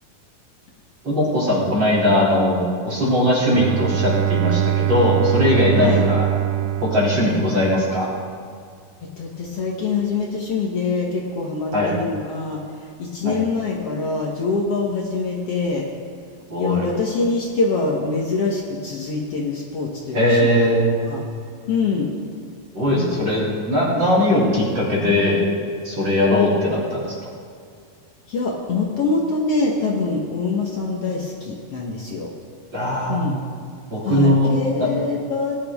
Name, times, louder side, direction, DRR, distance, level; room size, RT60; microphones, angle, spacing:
voice 1, 1.0-6.3 6.8-8.1 11.7-11.9 13.2-13.4 16.5-16.9 20.1-21.1 22.7-25.4 25.8-27.2 32.7-33.2 33.9-34.5 34.8-34.9, left 1 dB, 35° right, -6 dB, 3.4 m, -19 dB
Bowed string instrument, 3.5-8.2, right 11 dB, 90° right, 1.6 m, -23 dB
voice 2, 9.2-15.9 16.6-20.7 21.0-21.2 21.7-22.1 22.9-23.4 28.3-32.3 33.1-33.4 34.0-35.6, left 4 dB, 60° left, -1 dB, 1.7 m, -24 dB
19.0 x 11.0 x 3.6 m, 2.3 s
omnidirectional pair, 4.0 m